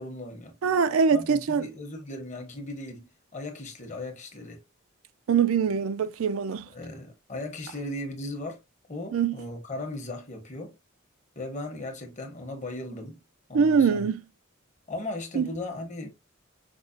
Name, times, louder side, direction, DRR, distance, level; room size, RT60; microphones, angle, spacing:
voice 1, 0.0-0.6 1.1-4.6 6.7-8.6 8.9-10.8 11.4-13.2 13.5-14.1 14.9-16.1, left 2 dB, 35° left, 0.9 m, -37 dB
voice 2, 0.6-1.7 5.3-6.7 9.1-9.3 13.5-14.2 15.4-15.5, right 6 dB, 85° right, 0.4 m, -23 dB
5.2 x 2.1 x 2.5 m
head